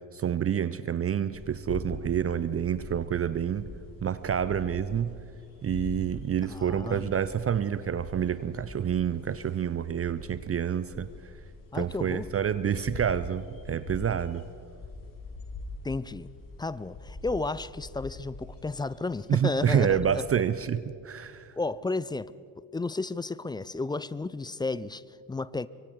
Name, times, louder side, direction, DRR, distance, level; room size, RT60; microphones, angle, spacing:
voice 1, 0.1-3.7 4.0-5.2 5.6-11.1 11.7-14.4 19.3-21.5, right 8 dB, 30° right, 15 dB, 0.7 m, -28 dB
sound 1, 1.3-20.4, left 3 dB, 40° left, 4.6 m, -44 dB
voice 2, 6.4-7.2 11.7-12.3 15.8-16.3 16.6-20.2 21.6-22.3 22.7-25.7, left 3 dB, 10° left, 18 dB, 0.4 m, -33 dB
25.0 x 23.5 x 4.7 m, 2.4 s
figure-of-eight pair, 50°, 49 cm